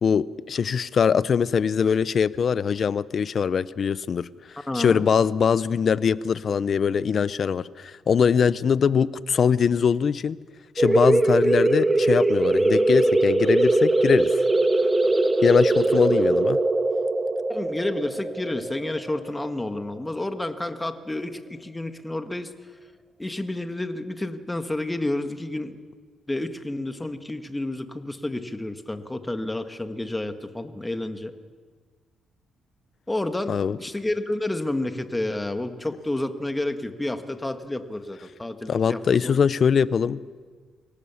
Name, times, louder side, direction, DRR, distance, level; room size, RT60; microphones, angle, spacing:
voice 1, 0.0-4.3 4.7-10.4 10.8-14.3 15.4-16.6 33.5-33.8 38.7-40.2, left 6 dB, 50° left, 17 dB, 0.7 m, -22 dB
voice 2, 4.7-5.1 17.5-22.5 23.2-25.8 26.3-31.3 33.1-39.4, left 1 dB, 10° left, 8 dB, 1.6 m, -30 dB
sound 1, 10.8-20.1, right 2 dB, 15° right, 1.3 m, -21 dB
24.5 x 18.0 x 7.2 m, 1.5 s
cardioid pair, 90°, 0 cm